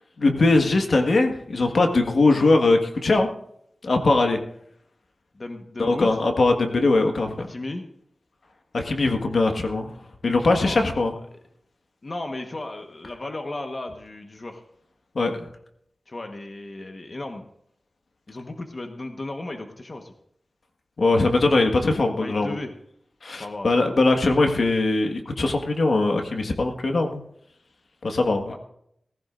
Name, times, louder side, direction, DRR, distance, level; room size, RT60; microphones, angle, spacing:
voice 1, 0.2-3.3 3.8-4.4 5.8-7.5 8.7-9.9 10.2-11.1 15.1-15.5 21.0-22.6 23.2-27.2 28.0-28.4, left 2 dB, 75° left, 4 dB, 1.6 m, -21 dB
voice 2, 5.3-6.2 7.5-7.8 10.6-11.0 12.0-14.6 16.1-17.4 18.3-20.1 22.2-22.7 23.3-23.9 28.5-28.6, left 2 dB, 45° left, 4 dB, 1.3 m, -35 dB
18.0 x 15.5 x 2.6 m, 0.71 s
wide cardioid pair, 105°, 0 cm